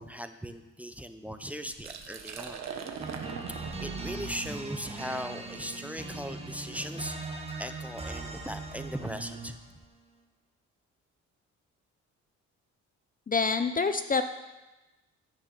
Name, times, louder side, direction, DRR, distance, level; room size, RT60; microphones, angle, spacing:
voice 1, 0.0-2.6 3.8-7.2 7.6-9.6, equal, 5° right, 8 dB, 0.8 m, -38 dB
Liquid, 1.7-7.5, right 6 dB, 60° right, 1.4 m, -43 dB
sound 1, 3.0-9.7, right 3 dB, 20° right, 1.7 m, -40 dB
voice 2, 13.3-14.2, left 4 dB, 30° left, 9 dB, 0.7 m, -26 dB
14.0 x 6.5 x 6.6 m, 1.1 s
cardioid pair, 90°, 30 cm